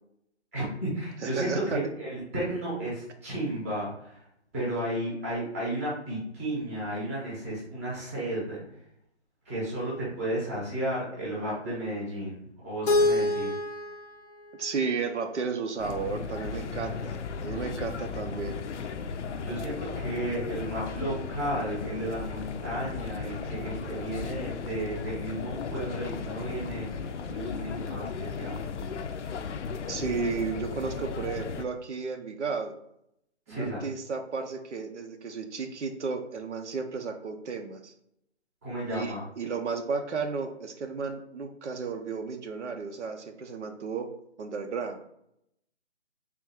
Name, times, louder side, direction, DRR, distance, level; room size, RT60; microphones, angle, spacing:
voice 1, 0.5-4.2 4.5-8.6 9.5-13.5 19.4-26.9 27.2-28.5 33.5-33.8 38.6-39.3, right 1 dB, 10° right, -6 dB, 0.8 m, -33 dB
voice 2, 1.2-1.9 14.6-18.5 29.9-32.7 33.5-37.9 38.9-44.1 44.4-45.0, right 5 dB, 75° right, 5 dB, 0.7 m, -33 dB
Keyboard (musical), 12.9-15.8, left 2 dB, 35° left, 0.6 m, -28 dB
sound 1, 15.8-31.6, left 5 dB, 80° left, 0.5 m, -36 dB
3.6 x 2.5 x 4.2 m, 0.76 s
hypercardioid pair, 165°, 35 cm